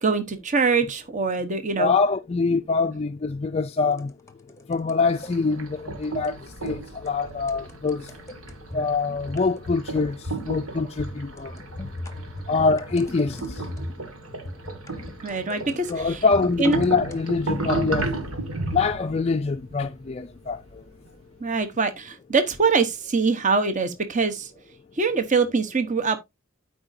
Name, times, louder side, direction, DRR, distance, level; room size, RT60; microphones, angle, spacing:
voice 1, 0.0-1.9 15.2-16.2 16.6-16.8 21.4-24.5 25.0-26.2, right 4 dB, 35° right, 1.1 m, -23 dB
voice 2, 1.8-4.1 4.7-6.4 6.6-8.1 8.7-10.2 10.5-11.5 12.5-13.6 15.9-18.1 18.7-20.6, left 4 dB, 30° left, 0.4 m, -24 dB
sound 1, 3.9-5.3 6.0-6.4 6.6-6.8 7.1-7.2 7.5-8.8 9.3-9.9 10.1-10.4 11.0-14.1 14.5-17.2, left 1 dB, 15° left, 0.9 m, -39 dB
sound 2, 5.0-21.1, right 3 dB, 90° right, 1.9 m, -34 dB
12.5 x 5.0 x 2.7 m
head